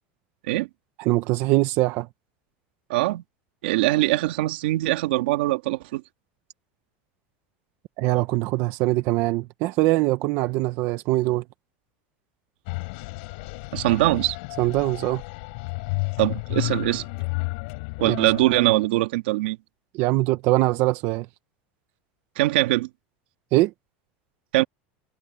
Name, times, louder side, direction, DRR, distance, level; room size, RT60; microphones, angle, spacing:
voice 1, 1.0-2.1 8.0-11.4 14.6-15.2 18.0-18.2 19.9-21.3 23.5-23.7, right 19 dB, 55° right, 1.1 m, -22 dB
voice 2, 2.9-3.2 3.6-6.0 13.7-14.4 16.2-17.0 18.0-19.6 22.4-22.9 24.5-24.6, right 18 dB, 85° right, 2.1 m, -22 dB
sound 1, 12.7-18.9, left 29 dB, 70° left, 5.9 m, -32 dB
supercardioid pair, 150°, 5 cm